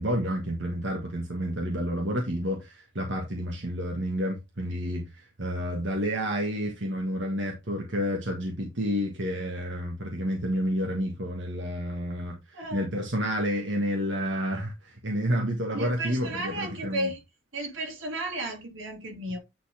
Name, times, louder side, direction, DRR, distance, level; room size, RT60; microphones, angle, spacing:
voice 1, 0.0-5.1 5.4-17.1, equal, 65° right, 1.7 m, -30 dB
voice 2, 12.5-12.8 15.7-17.2 17.5-19.4, right 1 dB, 90° right, 3.0 m, -33 dB
9.3 x 4.2 x 3.5 m
head